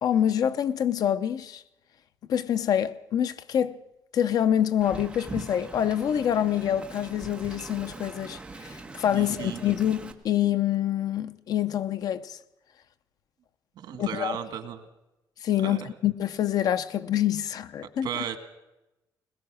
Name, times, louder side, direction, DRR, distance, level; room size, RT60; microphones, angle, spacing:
voice 1, 0.0-1.6 2.3-3.8 4.1-12.4 14.0-14.4 15.4-18.2, left 10 dB, 60° left, 0.7 m, -26 dB
Wind, 4.8-10.1, right 3 dB, 15° right, 1.5 m, -41 dB
voice 2, 9.1-9.6 13.8-14.8 15.6-15.9 18.0-18.4, right 9 dB, 85° right, 1.9 m, -35 dB
21.0 x 20.5 x 6.3 m
wide cardioid pair, 180°, 7 cm